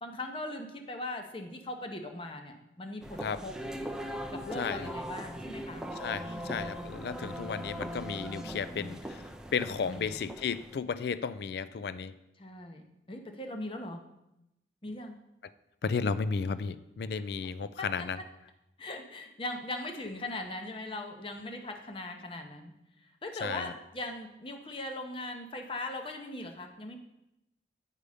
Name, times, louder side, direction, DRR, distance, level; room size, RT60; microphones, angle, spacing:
voice 1, 0.0-3.6 4.3-5.8 6.3-6.6 9.9-10.2 12.4-14.0 14.8-15.2 17.8-18.1 18.8-22.7 23.2-27.0, left 1 dB, 30° left, 4 dB, 0.8 m, -40 dB
sound 1, 3.0-10.8, equal, 5° right, 0.5 m, -40 dB
voice 2, 4.5-4.9 6.0-9.2 9.5-12.1 15.8-18.2 23.4-23.7, left 5 dB, 60° left, 15 dB, 0.3 m, -33 dB
8.2 x 5.2 x 4.9 m, 0.88 s
head